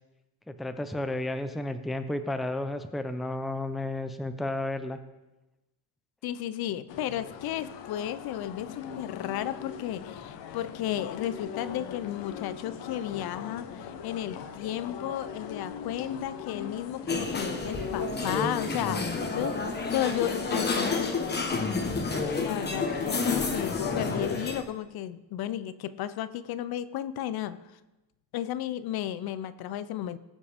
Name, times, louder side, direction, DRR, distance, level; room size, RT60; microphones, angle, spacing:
voice 1, 0.5-5.0, left 2 dB, ahead, 8 dB, 0.5 m, -32 dB
voice 2, 6.2-21.2 22.3-27.6 28.3-30.2, left 11 dB, 60° left, 15 dB, 0.6 m, -33 dB
sound 1, 6.9-24.2, left 7 dB, 80° left, 1.2 m, -40 dB
sound 2, 17.1-24.6, left 3 dB, 25° left, 1.3 m, -30 dB
18.5 x 7.5 x 3.5 m, 1.0 s
cardioid pair, 130°, 42 cm